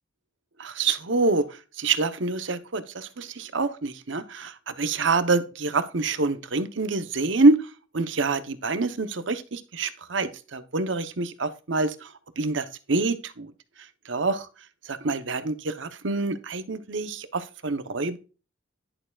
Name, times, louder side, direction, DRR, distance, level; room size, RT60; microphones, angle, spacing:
voice 1, 0.6-1.5 1.8-7.6 7.9-12.1 12.4-13.5 14.1-14.5 14.9-18.2, right 3 dB, 70° right, 11 dB, 0.9 m, -26 dB
11.0 x 6.7 x 2.4 m, 0.33 s
head